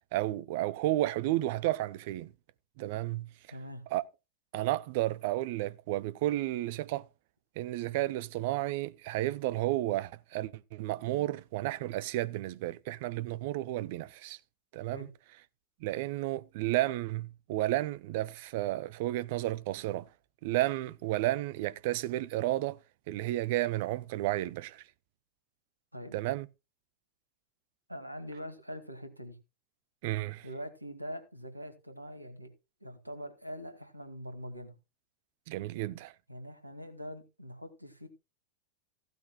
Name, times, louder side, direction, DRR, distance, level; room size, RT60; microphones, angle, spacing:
voice 1, 0.1-2.3 2.8-3.3 3.9-4.0 4.5-7.1 7.6-14.4 14.7-15.1 15.8-20.1 20.4-22.8 23.1-24.8 26.1-26.5 30.0-30.5 35.5-36.1, right 16 dB, 50° right, 0.7 m, -32 dB
voice 2, 3.5-3.8 14.9-15.1 25.9-26.2 27.9-29.4 30.4-32.5 32.8-34.8 36.3-38.1, equal, 85° right, 2.2 m, -43 dB
15.5 x 12.0 x 2.3 m
figure-of-eight pair, 90°, 0 cm